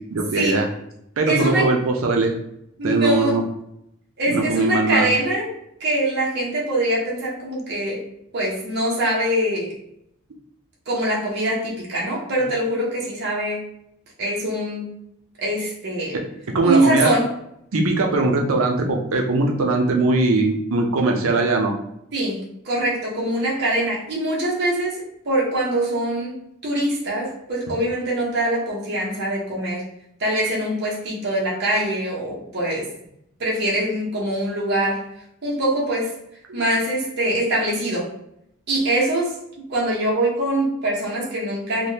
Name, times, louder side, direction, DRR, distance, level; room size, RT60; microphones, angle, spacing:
voice 1, 0.1-0.7 1.2-2.3 2.8-3.4 4.3-5.1 16.5-17.1 17.7-21.7 36.5-36.6, right 3 dB, 85° right, 2 dB, 0.5 m, -20 dB
voice 2, 1.2-1.7 2.8-3.4 4.2-5.5 5.8-8.0 8.3-9.7 10.9-13.6 14.2-14.9 15.4-16.2 16.6-17.3 22.1-26.4 26.6-29.8 30.2-32.9 33.4-35.0 35.4-36.1 36.5-38.1 38.7-39.3 39.7-41.9, right 1 dB, 50° right, -5 dB, 0.8 m, -23 dB
3.3 x 2.2 x 2.7 m, 0.77 s
head